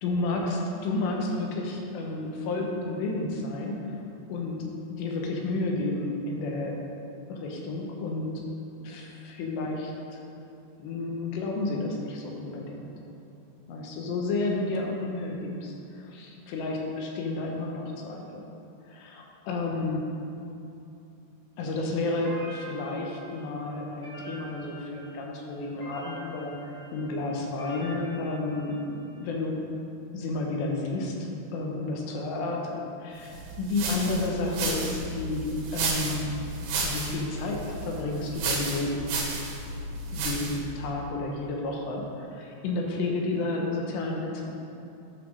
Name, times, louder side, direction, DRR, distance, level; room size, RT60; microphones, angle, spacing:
voice 1, 0.0-4.0 4.3-6.8 7.3-8.4 8.8-10.2 10.8-12.8 13.7-18.4 18.9-20.1 21.6-29.8 30.1-36.3 36.8-39.0 39.7-39.8 40.1-44.5, left 2 dB, 85° left, 0 dB, 3.3 m, -31 dB
sound 1, 22.2-29.2, right 1 dB, 30° left, 1.9 m, -45 dB
sound 2, 33.3-40.7, right 3 dB, 70° right, 3.1 m, -32 dB
10.0 x 6.0 x 6.5 m, 2.7 s
omnidirectional pair, 5.0 m